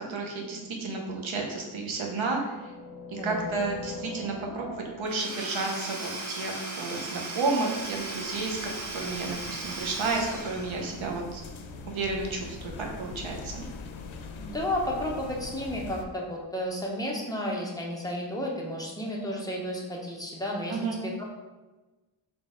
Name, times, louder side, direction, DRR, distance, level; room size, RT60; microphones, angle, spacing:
voice 1, 0.0-2.6 3.1-8.6 8.9-11.4 11.9-13.6 20.7-21.0, right 3 dB, 85° right, 1 dB, 0.9 m, -32 dB
sound 1, 0.6-0.7 1.8-5.3, left 3 dB, 55° left, 0.8 m, -42 dB
voice 2, 3.2-3.6 14.4-21.2, left 1 dB, 10° left, -3 dB, 0.8 m, -32 dB
Domestic sounds home sounds / Tools, 5.1-11.2, right 2 dB, 40° right, 0.8 m, -37 dB
sound 2, 7.8-16.1, left 4 dB, 85° left, 0.5 m, -43 dB
3.9 x 3.2 x 3.7 m, 1.2 s
wide cardioid pair, 130°, 46 cm